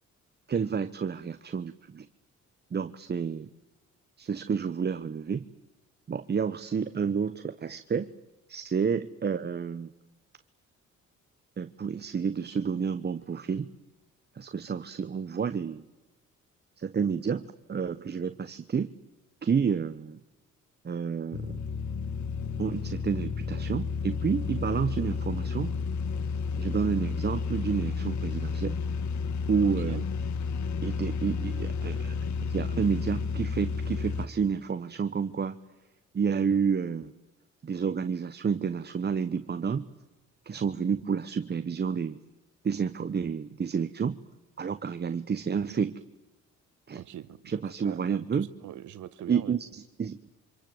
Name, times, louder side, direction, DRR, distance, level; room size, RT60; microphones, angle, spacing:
voice 1, 0.5-2.1 2.7-3.5 4.2-5.5 6.1-8.1 8.5-9.9 11.6-13.7 14.4-15.8 16.8-18.9 19.4-20.2 20.8-21.6 22.6-25.7 26.6-28.8 29.5-30.0 30.8-35.6 36.1-37.1 37.6-39.8 40.5-42.2 42.6-44.2 44.6-46.0 46.9-47.0 47.5-48.5 49.3-50.3, right 6 dB, 35° right, 11 dB, 1.0 m, -30 dB
sound 1, 21.3-34.3, left 5 dB, 70° left, 1.7 m, -31 dB
voice 2, 29.6-30.0 46.9-49.6, right 12 dB, 75° right, 13 dB, 1.3 m, -43 dB
27.5 x 25.5 x 7.9 m, 1.1 s
cardioid pair, 90°, 30 cm